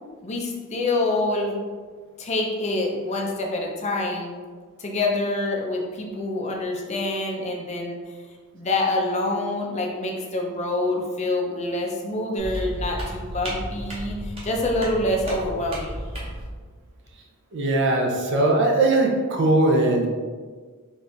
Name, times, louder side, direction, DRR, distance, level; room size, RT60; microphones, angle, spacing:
voice 1, 0.2-1.5 2.2-4.3 4.8-8.1 8.5-16.0, left 2 dB, 30° left, 0 dB, 0.5 m, -26 dB
sound 1, 12.4-16.5, equal, 25° right, 1.0 m, -33 dB
voice 2, 17.5-20.1, right 2 dB, 55° right, 1 dB, 0.5 m, -20 dB
4.1 x 2.5 x 3.4 m, 1.5 s
head